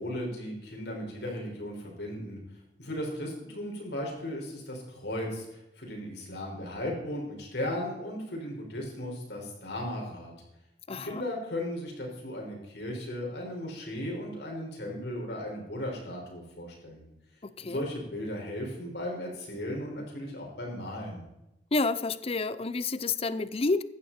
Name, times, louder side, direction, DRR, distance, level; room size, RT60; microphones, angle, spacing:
voice 1, 0.0-2.4 2.8-10.3 11.0-17.1 17.6-21.2, left 1 dB, 70° left, -1 dB, 5.4 m, -36 dB
voice 2, 10.9-11.3 17.4-17.9 21.7-23.8, left 3 dB, 35° left, 15 dB, 0.6 m, -29 dB
15.5 x 12.0 x 4.4 m, 0.88 s
head